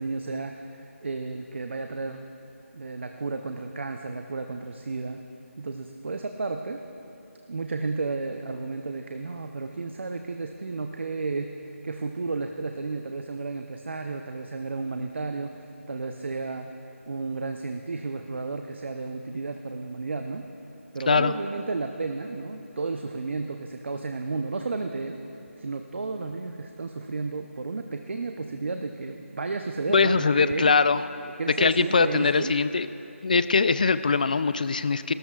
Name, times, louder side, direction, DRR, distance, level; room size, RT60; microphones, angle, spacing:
voice 1, 0.0-2.2 2.7-5.2 5.6-6.8 7.5-16.7 17.1-20.5 20.9-25.2 25.6-30.8 31.4-32.5, right 3 dB, 55° right, 5 dB, 0.7 m, -32 dB
voice 2, 29.9-31.1 31.6-32.9 33.2-35.1, left 4 dB, 35° left, 14 dB, 0.3 m, -22 dB
29.5 x 13.5 x 2.4 m, 2.9 s
figure-of-eight pair, 170°, 7 cm